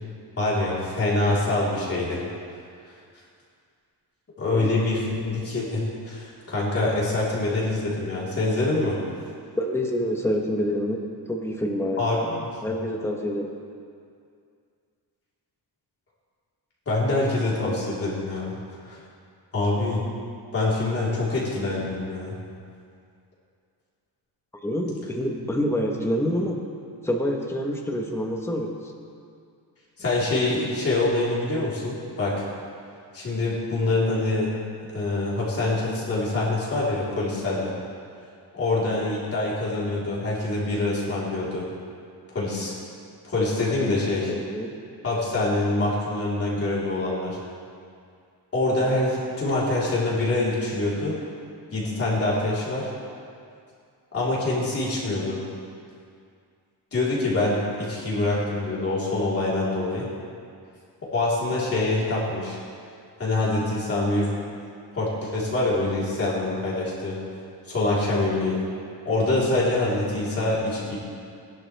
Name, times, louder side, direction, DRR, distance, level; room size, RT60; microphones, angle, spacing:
voice 1, 0.4-2.2 4.4-9.0 12.0-12.8 16.9-18.5 18.9-19.0 19.5-20.0 20.5-22.4 30.0-32.3 33.1-34.5 34.9-37.7 38.5-41.6 42.3-42.7 43.2-44.3 45.0-47.4 48.5-51.2 51.7-52.9 54.1-55.4 56.9-60.1 61.1-62.6 63.2-64.3 64.9-67.2 67.7-68.6 69.0-71.0, left 2 dB, 35° left, -7 dB, 3.9 m, -25 dB
voice 2, 9.6-11.0 11.3-12.0 12.6-13.5 24.6-26.6 27.0-28.8 43.4-43.5 43.8-44.8, equal, 5° left, 0 dB, 1.1 m, -27 dB
20.5 x 11.5 x 3.4 m, 2.3 s
wide cardioid pair, 170°, 40 cm